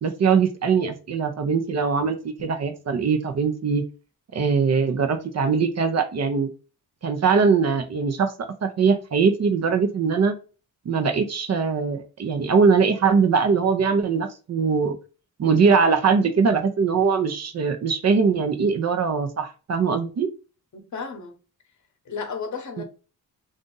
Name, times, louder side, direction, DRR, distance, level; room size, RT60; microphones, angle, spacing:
voice 1, 0.0-3.8 4.3-6.5 7.0-8.3 8.6-10.4 10.9-15.0 15.4-20.3 22.8-22.9, right 5 dB, 50° right, 0.6 m, -21 dB
voice 2, 20.7-21.3 22.1-22.8, left 5 dB, 55° left, 0.9 m, -33 dB
2.6 x 2.5 x 3.7 m
cardioid pair, 110°, 34 cm